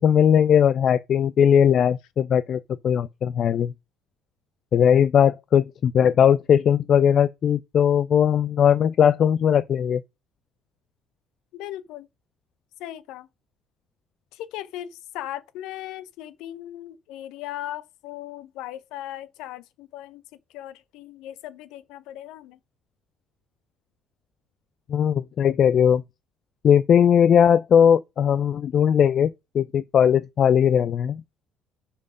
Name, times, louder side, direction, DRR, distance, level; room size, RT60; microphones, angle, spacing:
voice 1, 0.0-3.7 4.7-10.0 24.9-26.0 26.6-31.2, left 8 dB, 50° left, 0.4 m, -19 dB
voice 2, 11.5-12.1 12.8-13.3 14.3-20.2 20.5-22.6, left 13 dB, 65° left, 0.7 m, -38 dB
6.6 x 5.4 x 5.1 m
figure-of-eight pair, 55°, 0 cm